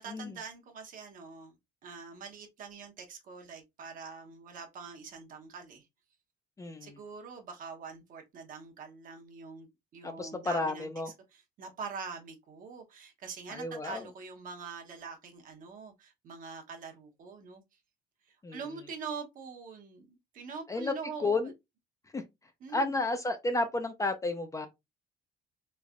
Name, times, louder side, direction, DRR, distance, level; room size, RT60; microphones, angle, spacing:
voice 1, 0.0-1.5 1.8-5.8 6.8-9.7 9.9-10.9 11.3-17.6 18.5-21.5 22.6-23.0, right 5 dB, 50° right, 0.9 m, -44 dB
voice 2, 6.6-7.0 10.0-11.1 13.5-14.1 18.4-18.6 20.7-20.9 21.2-21.5 22.1-22.2 22.7-24.7, left 2 dB, 15° left, 0.4 m, -32 dB
3.2 x 3.1 x 2.4 m
cardioid pair, 115°, 18 cm